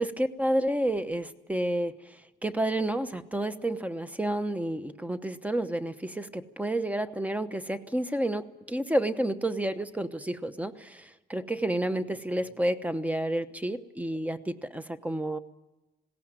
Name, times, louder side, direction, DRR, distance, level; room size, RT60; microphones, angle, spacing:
voice 1, 0.0-15.4, right 1 dB, 5° right, 10 dB, 1.0 m, -30 dB
20.5 x 17.0 x 8.9 m, 1.1 s
cardioid pair, 120°, 20 cm